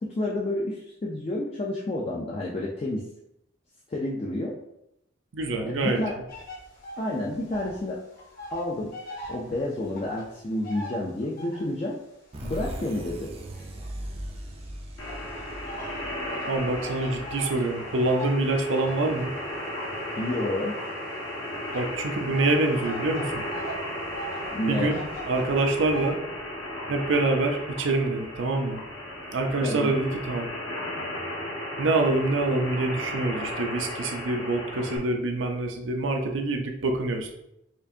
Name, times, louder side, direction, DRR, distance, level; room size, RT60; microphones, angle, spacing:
voice 1, 0.0-3.0 3.9-4.5 5.7-6.2 7.0-8.0 8.5-8.9 9.3-12.0 12.4-13.3 20.2-20.8 24.5-25.0 29.6-30.0, left 1 dB, 30° left, -3 dB, 0.4 m, -30 dB
voice 2, 5.3-6.0 16.5-19.3 21.7-23.4 24.7-26.2 26.9-28.8 29.3-30.5 31.8-37.3, right 2 dB, 75° right, 3 dB, 0.5 m, -26 dB
sound 1, 6.3-7.9 8.1-11.8 12.4-14.4 15.1-26.1, right 1 dB, 50° left, 1.0 m, -42 dB
sound 2, 12.3-17.8, right 1 dB, 30° right, 0.4 m, -39 dB
sound 3, 15.0-35.0, left 1 dB, 75° left, 1.2 m, -35 dB
4.4 x 2.5 x 2.6 m, 0.82 s
head